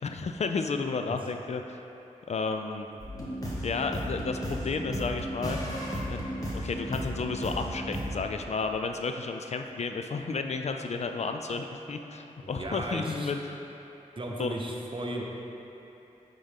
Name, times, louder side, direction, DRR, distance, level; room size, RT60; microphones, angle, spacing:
voice 1, 0.0-1.8 2.3-2.9 3.6-5.6 6.1-6.2 6.5-13.6 14.4-14.5, left 4 dB, 55° left, 5 dB, 0.4 m, -32 dB
sound 1, 3.0-8.2, equal, 25° left, 1.3 m, -34 dB
voice 2, 12.4-13.3 14.2-15.2, right 1 dB, 40° right, -1 dB, 0.8 m, -35 dB
9.2 x 3.7 x 3.5 m, 3.0 s
cardioid pair, 60°, 13 cm